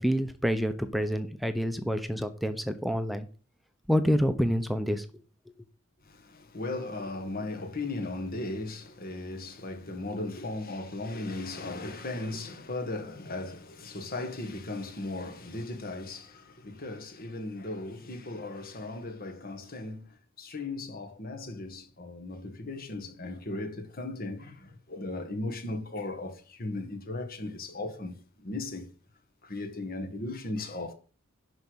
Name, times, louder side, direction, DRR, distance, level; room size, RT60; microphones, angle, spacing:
voice 1, 0.0-3.3 3.9-5.0, equal, ahead, 0.9 m, -27 dB
voice 2, 6.1-20.1 20.4-28.9 29.4-30.9, left 2 dB, 45° left, 1.7 m, -37 dB
11.0 x 5.1 x 6.3 m
head